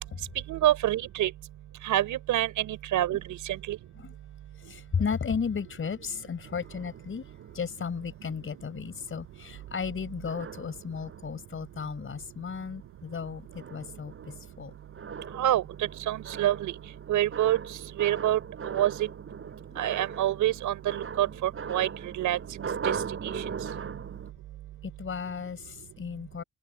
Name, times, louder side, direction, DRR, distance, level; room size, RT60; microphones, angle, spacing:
voice 1, 0.5-1.3 1.8-3.8 15.4-15.6 16.1-16.7 17.1-17.6 18.0-18.9 19.8-21.9 22.2-22.4 22.8-22.9 23.2-23.4, right 13 dB, 85° right, 6.3 m, -26 dB
voice 2, 4.7-7.3 7.5-14.1 14.6-14.7 19.7-19.8 24.8-26.4, left 6 dB, 45° left, 5.0 m, -34 dB
sound 1, 6.5-8.3 9.0-9.2 9.5-9.9 10.3-11.5 12.0-12.3 12.7-24.3, right 6 dB, 45° right, 7.6 m, -39 dB
open air
cardioid pair, 90°, 30 cm